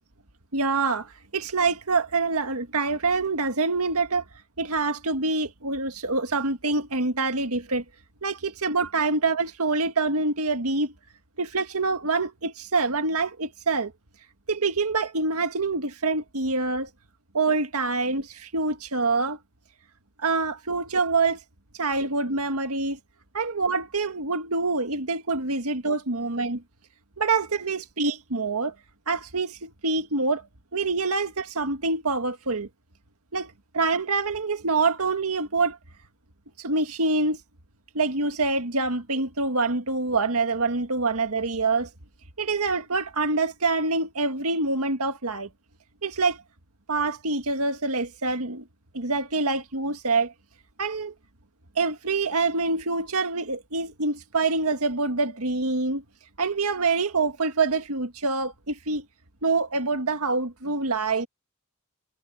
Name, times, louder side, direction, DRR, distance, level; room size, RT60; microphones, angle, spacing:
voice 1, 0.5-4.2 4.6-7.8 8.2-10.9 11.4-13.9 14.5-16.9 17.3-19.4 20.2-21.4 21.8-23.0 23.3-26.6 27.2-28.7 29.1-30.5 30.7-32.7 33.3-35.8 36.6-37.4 37.9-41.9 42.4-45.5 46.0-46.4 46.9-48.6 48.9-50.3 50.8-51.1 51.8-56.0 56.4-59.1 59.4-61.3, right 3 dB, 75° right, 1.9 m, -26 dB
head